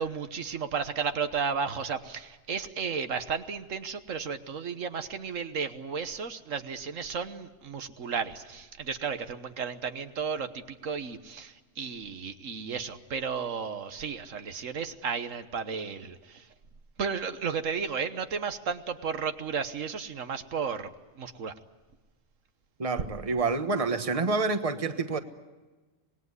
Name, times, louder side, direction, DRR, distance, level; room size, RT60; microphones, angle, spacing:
voice 1, 0.0-16.5 17.0-20.9 21.2-21.5, right 6 dB, 75° right, 9 dB, 1.5 m, -33 dB
voice 2, 22.8-25.2, right 3 dB, 30° right, 9 dB, 1.3 m, -28 dB
26.0 x 20.0 x 9.6 m, 1.2 s
omnidirectional pair, 1.3 m